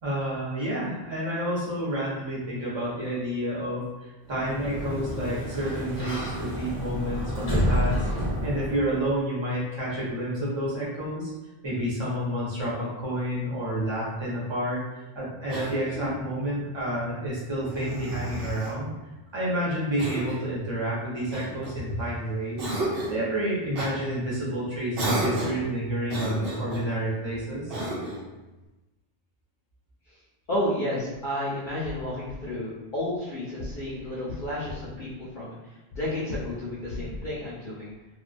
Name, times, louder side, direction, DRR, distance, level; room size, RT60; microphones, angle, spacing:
voice 1, 0.0-8.1 8.4-11.3 11.6-14.8 15.1-18.9 19.3-22.7 23.1-27.8, right 1 dB, 30° right, -7 dB, 0.8 m, -29 dB
Sliding door, 4.3-9.1, equal, 15° left, 0.7 m, -29 dB
Cough, 15.5-16.3 17.6-18.8 20.0-20.5 21.3-22.1 22.6-23.2 23.7-24.0 25.0-25.7 26.1-26.9 27.7-28.3, right 1 dB, 75° right, 0.8 m, -31 dB
voice 2, 30.5-35.5 35.9-37.9, left 1 dB, 60° left, -8 dB, 0.7 m, -31 dB
2.3 x 2.2 x 2.5 m, 1.1 s
omnidirectional pair, 1.0 m